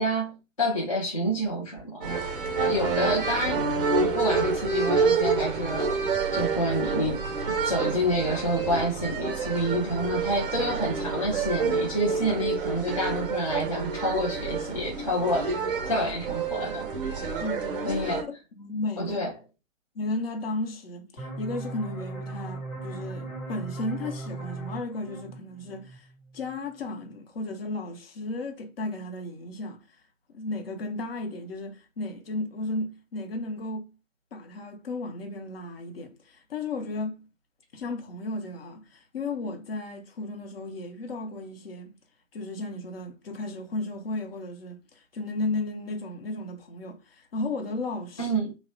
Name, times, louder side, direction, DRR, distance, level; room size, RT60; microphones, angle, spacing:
voice 1, 0.0-2.2 2.7-5.9 6.3-15.5 15.9-16.9 17.8-18.3 19.0-19.3 48.2-48.5, equal, 30° left, 0.3 m, -28 dB
sound 1, 2.0-18.2, right 4 dB, 45° right, 0.5 m, -28 dB
voice 2, 17.4-18.3 18.5-19.2 19.9-26.1 26.3-29.8 30.3-33.9 34.3-37.3 37.7-41.9 42.3-48.4, left 2 dB, 45° left, 0.7 m, -34 dB
sound 2, 21.2-26.6, right 3 dB, 90° left, 1.1 m, -38 dB
3.0 x 2.0 x 2.5 m
figure-of-eight pair, 125°, 40 cm